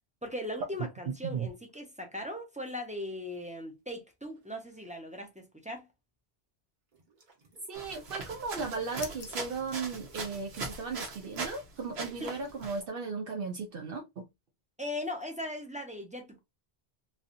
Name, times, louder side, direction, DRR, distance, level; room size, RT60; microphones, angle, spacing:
voice 1, 0.2-5.9 12.2-12.3 14.8-16.4, left 1 dB, 10° right, 0.6 m, -39 dB
sound 1, 4.3-5.0 6.9-7.9 8.3-12.9, right 4 dB, 50° right, 1.1 m, -60 dB
voice 2, 7.7-14.2, right 4 dB, 70° right, 0.7 m, -36 dB
sound 2, 7.7-11.6 11.9-12.8, right 3 dB, 85° right, 1.2 m, -40 dB
sound 3, 7.9-10.7, left 5 dB, 65° left, 0.9 m, -51 dB
3.2 x 2.6 x 2.5 m
omnidirectional pair, 1.0 m